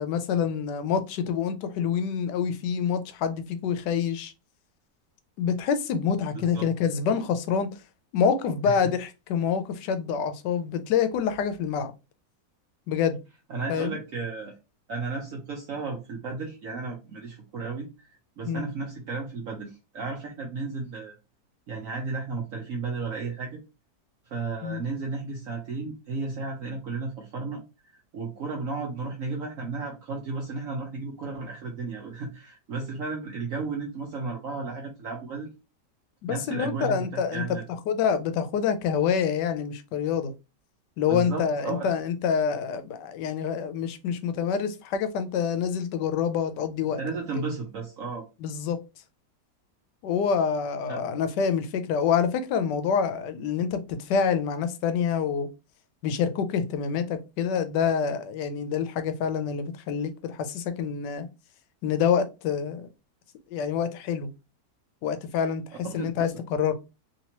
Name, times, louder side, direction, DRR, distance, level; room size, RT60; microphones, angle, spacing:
voice 1, 0.0-4.3 5.4-7.7 8.1-11.9 12.9-13.2 13.7-14.0 18.5-18.7 24.6-24.8 36.2-37.4 37.9-40.3 41.0-47.0 48.4-48.8 50.0-55.5 56.0-61.3 61.8-62.9 63.5-64.3 65.0-66.7, left 7 dB, 80° left, 1.2 m, -27 dB
voice 2, 6.3-6.7 8.6-8.9 13.5-14.6 14.9-18.1 18.4-21.2 21.7-23.6 24.3-27.6 27.9-35.5 36.3-37.6 41.1-41.9 47.0-48.2 50.9-51.0 65.8-66.3, right 4 dB, 60° right, 0.9 m, -34 dB
3.3 x 2.9 x 2.9 m
omnidirectional pair, 1.9 m